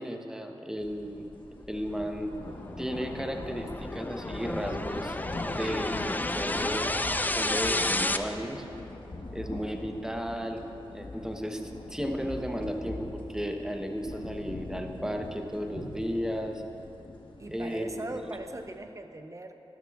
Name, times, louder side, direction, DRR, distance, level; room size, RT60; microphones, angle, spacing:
voice 1, 0.0-1.4 1.7-2.4 2.8-7.0 7.4-8.6 9.3-10.6 10.9-16.6 17.5-18.0, equal, 5° right, 4 dB, 0.9 m, -34 dB
sound 1, 1.0-1.1 1.5-18.8, left 2 dB, 60° left, 1.2 m, -42 dB
sound 2, 1.2-8.2, left 2 dB, 20° left, 0.4 m, -32 dB
voice 2, 17.4-19.5, right 2 dB, 35° right, 6 dB, 0.7 m, -40 dB
12.5 x 12.5 x 2.4 m, 2.9 s
cardioid pair, 45°, 10 cm